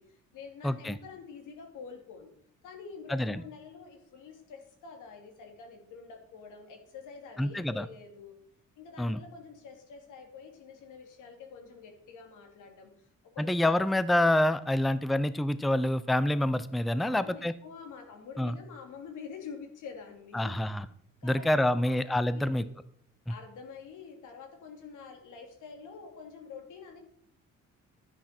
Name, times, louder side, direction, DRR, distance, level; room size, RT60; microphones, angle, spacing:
voice 1, 0.0-2.3 2.6-8.3 8.8-13.7 15.1-15.2 17.0-20.6 21.2-22.7 23.3-27.0, left 5 dB, 85° left, 3 dB, 2.8 m, -47 dB
voice 2, 0.6-1.0 3.1-3.4 7.4-7.9 9.0-9.2 13.4-17.5 18.4-18.5 20.3-20.8 21.2-22.6 23.3-23.4, left 1 dB, ahead, 14 dB, 0.5 m, -27 dB
11.5 x 10.5 x 4.4 m, 0.66 s
cardioid pair, 90°, 30 cm